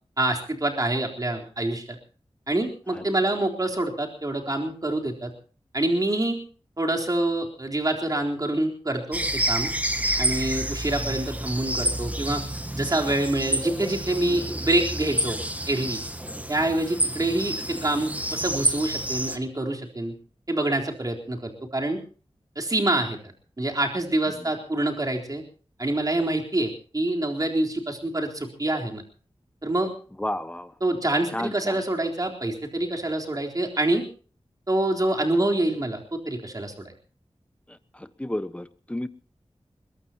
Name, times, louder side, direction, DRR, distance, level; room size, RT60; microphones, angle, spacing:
voice 1, 0.2-2.0 2.5-5.3 5.7-6.4 6.8-9.7 10.2-12.4 12.7-15.4 15.7-16.0 16.5-20.1 20.5-22.0 22.6-25.4 25.8-29.0 29.6-29.9 30.8-34.0 34.7-36.9, right 1 dB, 35° right, 2 dB, 3.9 m, -26 dB
sound 1, 9.1-19.4, right 1 dB, 15° right, 1.6 m, -29 dB
voice 2, 30.2-30.7 31.3-31.8 37.7-39.1, left 1 dB, 10° left, 12 dB, 1.2 m, -32 dB
22.0 x 21.0 x 2.9 m, 0.40 s
wide cardioid pair, 80°, 11 cm